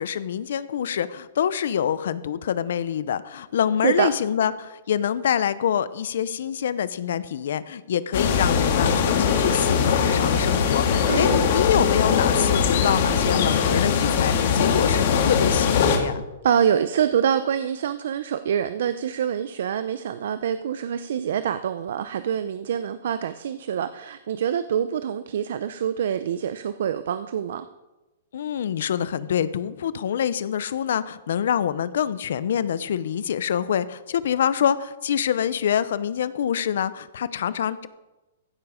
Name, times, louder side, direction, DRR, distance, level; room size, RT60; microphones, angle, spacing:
voice 1, 0.0-16.2 28.3-37.9, left 9 dB, 70° left, 16 dB, 0.6 m, -26 dB
sound 1, 8.1-16.0, left 6 dB, 50° left, 1.8 m, -21 dB
voice 2, 11.1-11.4 16.4-27.6, right 8 dB, 65° right, 12 dB, 0.5 m, -25 dB
15.5 x 7.1 x 5.0 m, 1.1 s
hypercardioid pair, 165°, 0 cm